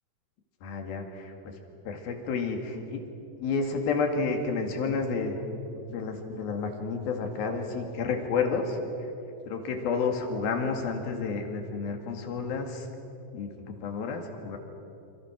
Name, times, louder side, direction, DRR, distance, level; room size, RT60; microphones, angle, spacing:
voice 1, 0.6-1.6 1.9-3.1 3.4-5.4 5.9-9.1 9.5-12.9 13.3-14.6, left 4 dB, 85° left, 4 dB, 4.1 m, -30 dB
28.0 x 26.0 x 6.4 m, 2.8 s
omnidirectional pair, 4.2 m